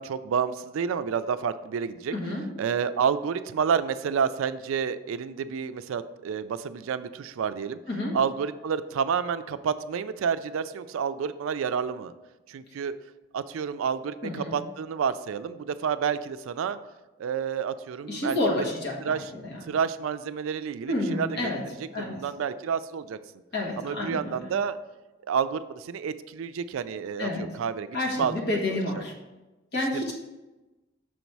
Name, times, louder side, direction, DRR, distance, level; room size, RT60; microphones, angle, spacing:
voice 1, 0.0-2.1 2.6-7.8 8.1-12.1 12.5-12.9 13.3-16.8 17.2-18.4 19.0-19.3 19.7-21.5 22.0-23.2 23.8-24.8 25.3-28.6 29.9-30.1, right 6 dB, 80° right, 13 dB, 0.3 m, -29 dB
voice 2, 2.1-2.5 7.9-8.2 14.2-14.5 18.1-19.6 20.9-21.6 21.9-22.2 23.5-24.4 27.2-27.5 27.9-29.1 29.7-30.1, left 1 dB, 55° left, -2 dB, 1.4 m, -29 dB
6.2 x 4.1 x 4.6 m, 1.1 s
head